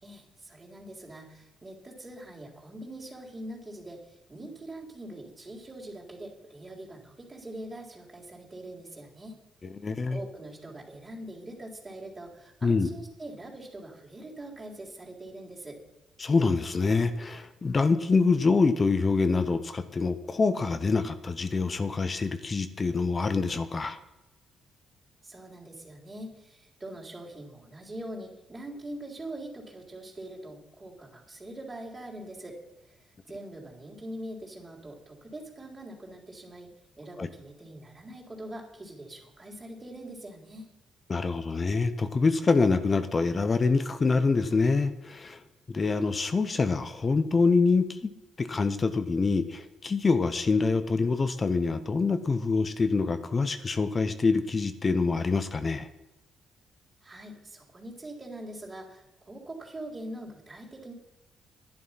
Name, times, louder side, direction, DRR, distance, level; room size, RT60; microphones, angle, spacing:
voice 1, 0.0-9.4 10.1-15.8 25.2-32.6 33.2-36.7 37.0-40.7 57.0-60.9, right 1 dB, 20° right, -2 dB, 3.8 m, -43 dB
voice 2, 9.8-10.2 12.6-12.9 16.2-24.0 37.2-37.3 41.1-45.4 45.7-48.1 48.4-55.9, left 4 dB, 30° left, 10 dB, 0.9 m, -25 dB
11.5 x 10.5 x 5.8 m, 0.99 s
cardioid pair, 90°, 0 cm